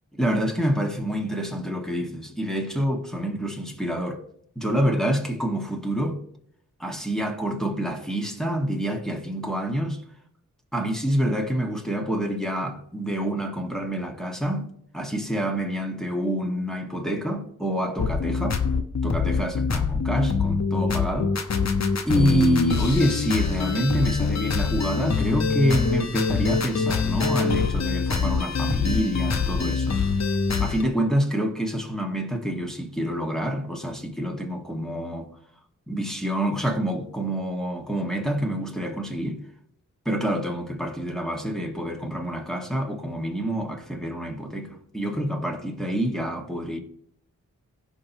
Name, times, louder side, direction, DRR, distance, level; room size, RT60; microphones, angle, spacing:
voice 1, 0.1-4.2 4.6-6.2 6.8-10.0 10.7-18.6 19.0-21.4 22.0-30.0 30.6-35.3 35.9-39.4 40.1-46.8, equal, ahead, 2.1 m, -27 dB
sound 1, 18.0-30.8, left 5 dB, 55° left, 1.0 m, -24 dB
16.0 x 5.5 x 3.1 m
cardioid pair, 50°, 32 cm